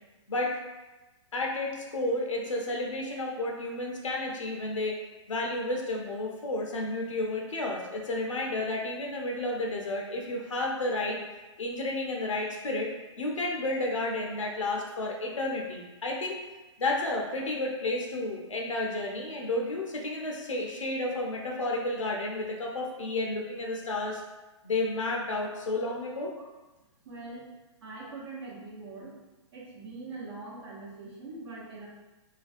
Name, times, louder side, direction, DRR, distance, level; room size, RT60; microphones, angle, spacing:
voice 1, 0.3-0.6 1.3-5.0 5.3-11.2 11.6-16.4 16.8-24.2 24.6-26.3, left 2 dB, 90° left, 0 dB, 0.5 m, -31 dB
voice 2, 27.0-27.4 27.8-29.1 29.5-31.9, right 3 dB, 55° right, -4 dB, 0.8 m, -42 dB
2.4 x 2.2 x 2.4 m, 1.1 s
hypercardioid pair, 120°, 16 cm